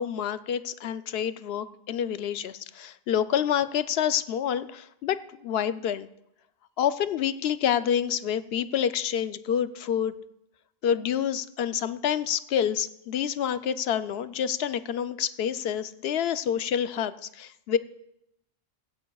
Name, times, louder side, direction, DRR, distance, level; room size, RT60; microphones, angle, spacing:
voice 1, 0.0-6.1 6.8-10.1 10.8-17.8, left 9 dB, 70° left, 13 dB, 0.8 m, -28 dB
16.0 x 15.0 x 2.3 m, 0.81 s
omnidirectional pair, 1.1 m